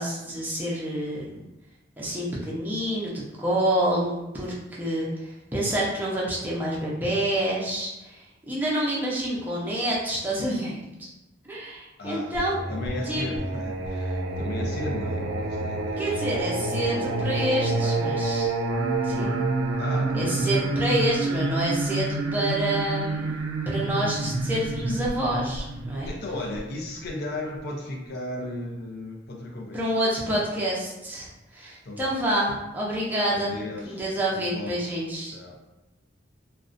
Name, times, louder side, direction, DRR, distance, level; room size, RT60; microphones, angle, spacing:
voice 1, 0.0-1.4 2.0-11.1 11.5-12.5 13.1-13.2 16.0-18.5 19.0-19.4 20.1-26.1 29.7-31.3 31.5-33.6 33.8-35.6, right 1 dB, 10° right, -6 dB, 0.5 m, -28 dB
voice 2, 12.0-16.2 16.8-18.0 19.8-21.1 21.3-21.5 23.9-24.2 26.0-29.8 31.8-32.1 33.3-34.0 34.3-34.9 35.3-35.6, left 1 dB, 55° left, -1 dB, 0.5 m, -36 dB
Singing, 12.4-27.1, right 2 dB, 85° right, 0.3 m, -28 dB
2.4 x 2.1 x 2.5 m, 0.98 s
head